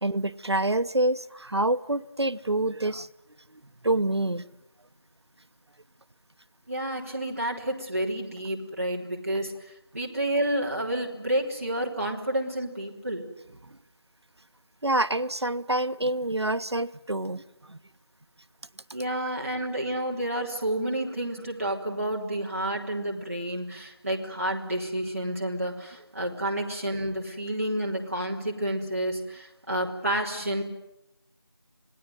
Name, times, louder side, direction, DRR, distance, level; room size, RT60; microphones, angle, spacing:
voice 1, 0.0-3.1 3.8-4.5 14.8-17.4 17.7-17.8, right 1 dB, 80° right, 14 dB, 1.1 m, -26 dB
voice 2, 6.7-13.3 18.9-30.6, right 1 dB, 35° right, -2 dB, 3.5 m, -30 dB
27.0 x 19.5 x 9.3 m, 0.92 s
figure-of-eight pair, 180°, 14 cm